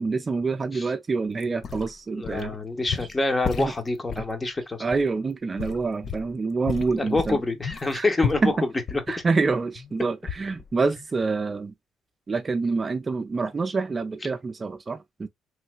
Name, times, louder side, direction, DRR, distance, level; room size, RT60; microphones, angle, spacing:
voice 1, 0.0-2.6 3.6-3.7 4.2-4.3 4.8-7.4 7.9-8.1 8.4-8.5 9.1-11.7 12.3-15.3, right 4 dB, 35° right, 0.4 m, -26 dB
sound 1, 1.4-2.6 2.9-4.3 4.9-5.0 5.6-6.4 6.6-9.9 10.3-10.7 11.0-11.1, left 6 dB, 55° left, 0.5 m, -33 dB
voice 2, 2.1-4.8 6.9-8.7, left 2 dB, 25° left, 0.9 m, -26 dB
3.1 x 2.8 x 2.2 m
supercardioid pair, 70°, 0 cm